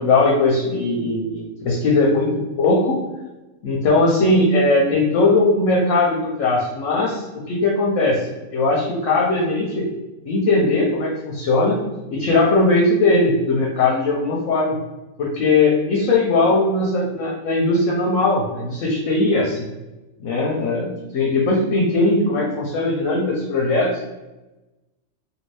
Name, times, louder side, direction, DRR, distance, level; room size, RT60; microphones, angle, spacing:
voice 1, 0.0-3.0 3.6-8.3 8.5-9.9 10.3-11.8 12.1-14.8 15.2-19.7 20.2-24.0, left 2 dB, 65° left, -2 dB, 0.9 m, -19 dB
2.7 x 2.6 x 3.1 m, 1.0 s
omnidirectional pair, 1.5 m